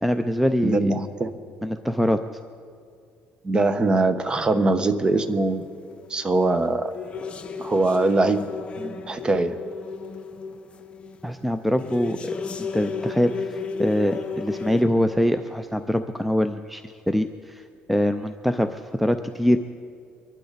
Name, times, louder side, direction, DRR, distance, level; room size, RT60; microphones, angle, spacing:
voice 1, 0.0-0.9 1.6-2.2 11.2-17.6 17.9-19.6, equal, ahead, 9 dB, 0.5 m, -24 dB
voice 2, 0.6-1.3 3.4-5.6 6.1-6.9 7.6-8.5 8.8-9.6, right 2 dB, 25° right, 10 dB, 1.0 m, -22 dB
sound 1, 5.0-6.6 6.8-14.8, left 5 dB, 30° left, 1.0 m, -34 dB
24.0 x 11.5 x 4.1 m, 2.3 s
cardioid pair, 110°, 4 cm